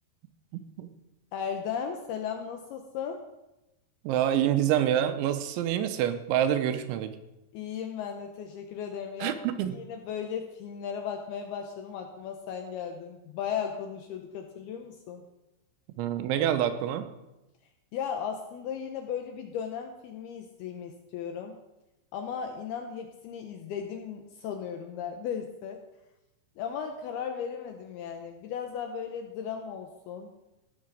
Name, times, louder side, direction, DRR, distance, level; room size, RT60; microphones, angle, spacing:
voice 1, 1.3-3.2 7.5-9.4 9.7-15.3 17.9-21.6 22.1-25.8 26.6-30.3, left 7 dB, 80° left, 4 dB, 2.3 m, -36 dB
voice 2, 4.0-7.2 9.2-9.8 16.0-17.1, right 10 dB, 90° right, 10 dB, 3.1 m, -27 dB
16.0 x 6.2 x 6.2 m, 0.96 s
omnidirectional pair, 5.4 m